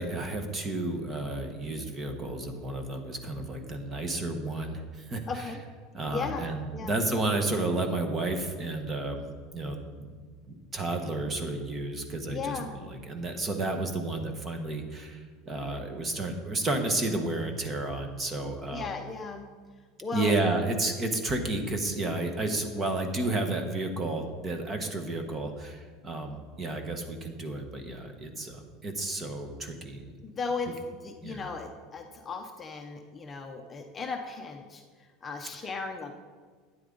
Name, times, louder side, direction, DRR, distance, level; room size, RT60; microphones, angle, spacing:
voice 1, 0.0-5.2 5.9-9.3 9.5-10.2 10.5-18.9 20.1-30.0 31.2-31.5, right 2 dB, 20° right, 5 dB, 1.2 m, -31 dB
voice 2, 5.3-5.6 6.1-6.5 6.7-7.0 12.3-12.7 18.7-19.5 20.0-20.3 30.2-36.2, left 4 dB, 20° left, 3 dB, 0.7 m, -36 dB
12.0 x 9.4 x 3.9 m, 1.6 s
supercardioid pair, 155°, 0 cm